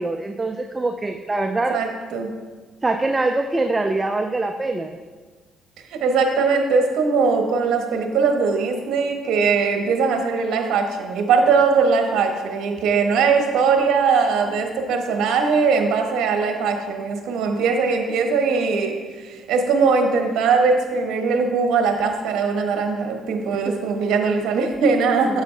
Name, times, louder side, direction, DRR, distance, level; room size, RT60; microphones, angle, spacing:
voice 1, 0.0-1.8 2.8-4.9 23.7-23.8 25.3-25.4, right 2 dB, 20° right, 6 dB, 0.4 m, -24 dB
voice 2, 1.7-2.3 5.9-25.4, right 5 dB, 75° right, 4 dB, 1.2 m, -20 dB
9.1 x 7.3 x 3.3 m, 1.4 s
cardioid pair, 100°, 0 cm